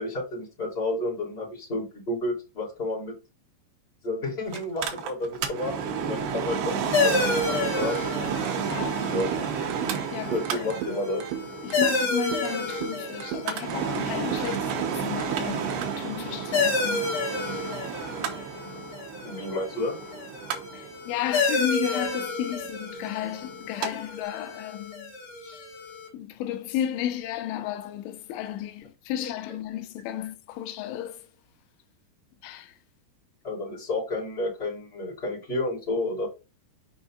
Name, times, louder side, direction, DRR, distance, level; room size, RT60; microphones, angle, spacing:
voice 1, 0.0-3.1 4.0-7.9 9.1-9.3 10.2-11.2 19.2-20.0 29.2-29.3 33.4-36.3, left 2 dB, 15° left, 3.0 m, -31 dB
Mechanical fan, 4.5-23.9 24.2-24.3, right 7 dB, 70° right, 2.7 m, -32 dB
sound 1, 6.9-26.1, left 3 dB, 55° left, 2.0 m, -31 dB
sound 2, 7.8-15.8, right 11 dB, 90° right, 3.1 m, -38 dB
voice 2, 8.7-9.1 9.8-10.4 11.6-15.7 16.0-17.0 20.7-25.1 25.4-25.7 26.1-31.2 32.4-32.7, left 11 dB, 90° left, 3.1 m, -33 dB
7.2 x 5.2 x 2.5 m
omnidirectional pair, 5.2 m